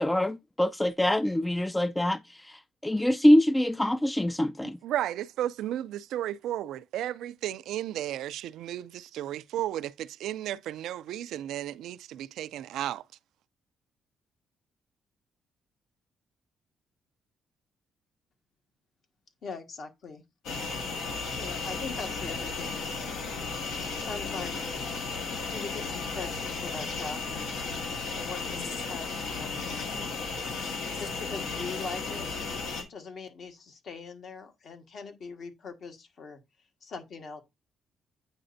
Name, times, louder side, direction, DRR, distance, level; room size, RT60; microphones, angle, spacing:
voice 1, 0.0-4.8, left 1 dB, 10° left, 0.3 m, -24 dB
voice 2, 4.8-13.0, right 12 dB, 85° right, 0.3 m, -34 dB
voice 3, 19.4-20.2 21.3-23.1 23.9-24.8 25.4-27.6 28.1-30.1 30.9-32.3 32.9-36.4 36.8-37.4, left 4 dB, 60° left, 1.4 m, -41 dB
sound 1, 20.4-32.8, left 4 dB, 85° left, 1.6 m, -34 dB
8.8 x 4.1 x 2.6 m
cardioid pair, 90°, 0 cm